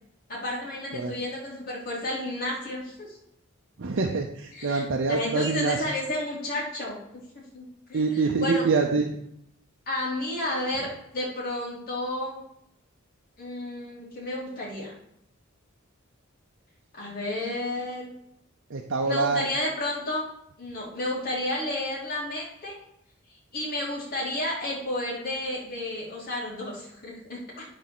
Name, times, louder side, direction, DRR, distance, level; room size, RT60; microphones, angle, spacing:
voice 1, 0.3-3.2 4.5-4.8 5.1-7.0 7.5-8.6 9.9-10.9 11.1-12.4 13.4-14.9 16.9-18.1 19.0-20.3 20.6-22.8 23.5-27.6, left 1 dB, 45° left, -8 dB, 2.5 m, -31 dB
voice 2, 3.8-5.9 7.9-9.2 18.7-19.5, right 4 dB, 65° right, 2 dB, 0.7 m, -25 dB
10.5 x 4.2 x 6.1 m, 0.75 s
head